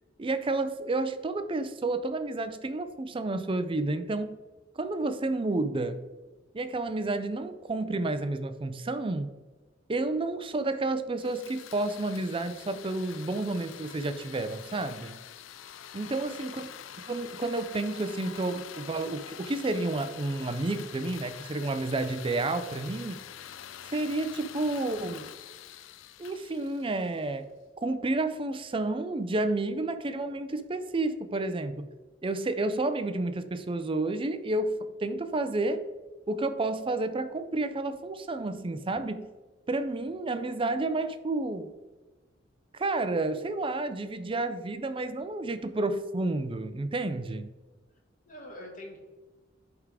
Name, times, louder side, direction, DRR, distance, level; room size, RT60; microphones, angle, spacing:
voice 1, 0.2-4.4 4.8-6.0 6.5-9.3 9.9-15.2 15.9-16.7 17.1-23.2 23.9-25.3 26.2-27.5 27.8-31.9 32.2-35.8 36.3-39.3 39.7-41.7 42.7-47.5, right 2 dB, 25° right, 10 dB, 0.5 m, -30 dB
sound 1, 11.2-27.4, left 10 dB, 85° left, 0.4 m, -46 dB
voice 2, 16.1-16.7 48.3-49.0, left 1 dB, 45° left, -1 dB, 1.9 m, -45 dB
11.0 x 3.6 x 4.7 m, 1.2 s
head